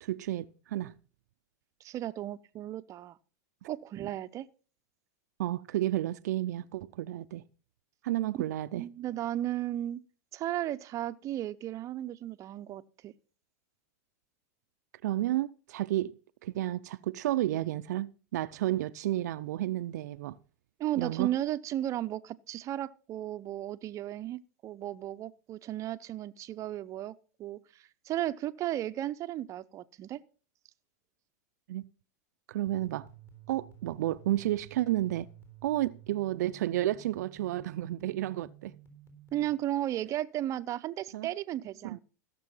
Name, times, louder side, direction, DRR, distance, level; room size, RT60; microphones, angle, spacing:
voice 1, 0.0-0.9 5.4-7.4 8.0-8.8 15.0-16.1 16.4-20.4 21.0-21.3 31.7-31.8 32.5-33.1 33.5-35.3 35.6-38.7 41.1-41.3 41.8-42.0, right 14 dB, 75° right, 0.5 m, -31 dB
voice 2, 1.8-3.2 3.7-4.5 8.3-8.4 8.8-10.0 10.3-13.1 20.8-30.2 39.3-42.0, right 13 dB, 35° right, 0.7 m, -35 dB
sound 1, 32.7-39.5, right 8 dB, 25° left, 3.7 m, -53 dB
16.0 x 6.9 x 5.5 m
supercardioid pair, 120°, 9 cm